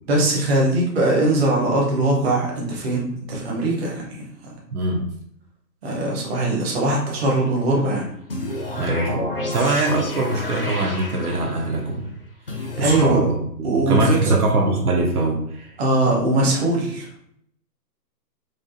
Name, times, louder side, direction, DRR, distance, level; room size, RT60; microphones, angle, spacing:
voice 1, 0.1-4.2 5.8-8.1 12.8-13.2 13.6-14.4 15.8-17.0, right 2 dB, 40° right, -2 dB, 1.0 m, -21 dB
voice 2, 4.7-5.0 8.8-12.1 12.6-15.7, right 2 dB, 60° right, -1 dB, 1.0 m, -22 dB
sound 1, 8.3-11.8 12.5-13.0, left 2 dB, 40° left, 0.4 m, -30 dB
4.7 x 2.5 x 2.6 m, 0.68 s
hypercardioid pair, 145°, 50 cm